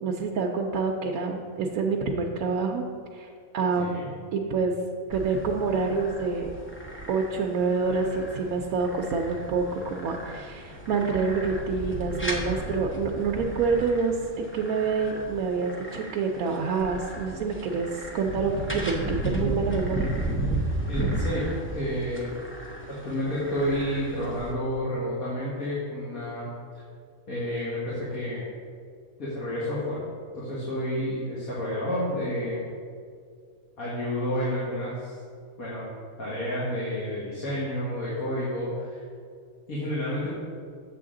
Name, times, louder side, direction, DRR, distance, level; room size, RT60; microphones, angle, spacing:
voice 1, 0.0-2.9 3.1-3.3 3.5-4.0 4.3-4.7 5.1-6.5 7.1-17.9 18.1-20.1, right 4 dB, 90° right, 1 dB, 1.1 m, -27 dB
voice 2, 3.8-4.1 20.9-21.5 21.7-22.3 22.9-26.5 27.3-28.5 29.2-30.0 30.3-32.6 33.8-35.2 35.6-35.9 36.2-39.0 39.7-40.3, equal, 90° left, -8 dB, 2.1 m, -30 dB
sound 1, 5.1-24.5, right 1 dB, 15° left, 0.6 m, -34 dB
7.7 x 6.9 x 3.7 m, 2.2 s
omnidirectional pair, 1.4 m